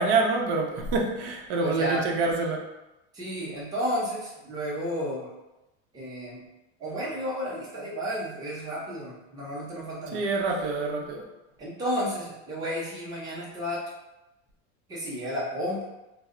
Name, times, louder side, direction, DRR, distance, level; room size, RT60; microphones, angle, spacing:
voice 1, 0.0-2.6 10.1-11.2, right 3 dB, 80° right, 0 dB, 0.6 m, -26 dB
voice 2, 1.6-2.0 3.1-5.3 5.9-6.4 6.8-10.3 11.6-13.9 14.9-15.8, equal, 10° right, -7 dB, 0.5 m, -32 dB
2.1 x 2.0 x 3.6 m, 0.97 s
supercardioid pair, 160°, 34 cm